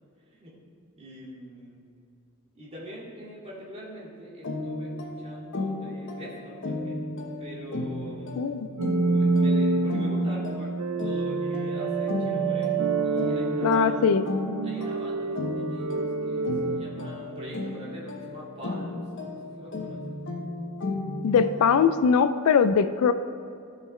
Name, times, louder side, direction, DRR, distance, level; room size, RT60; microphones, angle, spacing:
voice 1, 1.0-1.8 2.5-7.0 7.4-8.5 9.0-14.1 14.6-20.2, equal, 30° right, -6 dB, 2.2 m, -43 dB
sound 1, 4.4-21.9, left 2 dB, 55° left, 1.0 m, -35 dB
voice 2, 8.4-8.7 13.6-14.2 21.2-23.1, left 6 dB, 75° left, 12 dB, 0.3 m, -21 dB
sound 2, 8.8-17.7, right 3 dB, 90° right, 0.5 m, -27 dB
15.0 x 5.7 x 3.2 m, 2.6 s
head